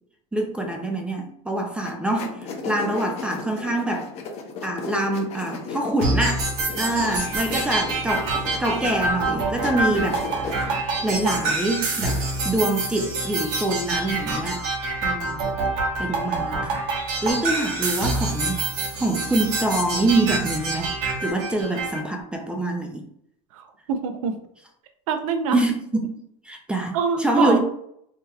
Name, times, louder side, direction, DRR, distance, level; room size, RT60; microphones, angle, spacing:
voice 1, 0.3-4.1 4.6-6.5 6.8-8.3 8.6-10.2 10.5-14.7 15.0-15.5 16.0-16.8 17.2-18.7 18.9-20.9 21.2-23.0 25.5-26.2 26.5-27.6, right 1 dB, 5° right, 2 dB, 0.4 m, -25 dB
sound 1, 1.8-12.6, left 4 dB, 40° left, 0.6 m, -36 dB
sound 2, 6.0-22.0, right 3 dB, 55° right, 1.0 m, -26 dB
voice 2, 23.5-24.4 25.1-25.6 26.9-27.6, right 5 dB, 75° right, 7 dB, 0.6 m, -25 dB
3.3 x 2.9 x 2.3 m, 0.71 s
supercardioid pair, 135°, 18 cm